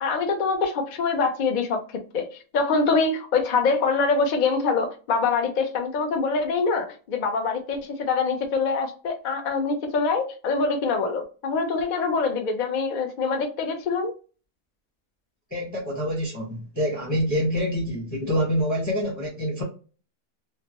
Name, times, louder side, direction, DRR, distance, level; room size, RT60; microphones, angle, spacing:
voice 1, 0.0-14.1, left 4 dB, 80° left, 0.4 m, -24 dB
voice 2, 15.5-19.6, equal, 15° left, 0.9 m, -26 dB
3.2 x 2.0 x 2.8 m
omnidirectional pair, 1.6 m